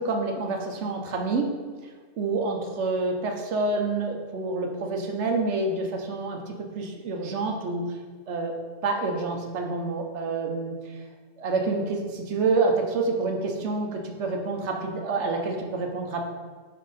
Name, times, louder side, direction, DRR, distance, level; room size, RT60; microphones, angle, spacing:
voice 1, 0.0-1.5 2.2-7.8 8.3-8.5 8.8-10.7 11.4-16.2, right 3 dB, 80° right, 2 dB, 1.1 m, -27 dB
5.6 x 5.2 x 4.1 m, 1.5 s
omnidirectional pair, 1.2 m